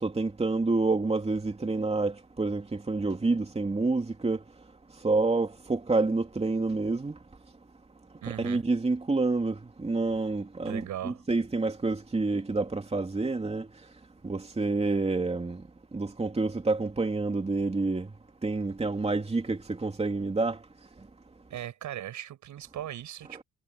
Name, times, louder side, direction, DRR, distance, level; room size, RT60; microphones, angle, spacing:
voice 1, 0.0-4.4 5.0-7.1 8.3-13.7 14.2-15.6 15.9-18.1 18.4-20.6, right 3 dB, 20° right, 2.9 m, -28 dB
voice 2, 8.2-8.6 10.7-11.2 21.5-23.4, right 11 dB, 75° right, 7.0 m, -38 dB
cardioid pair, 90°, 30 cm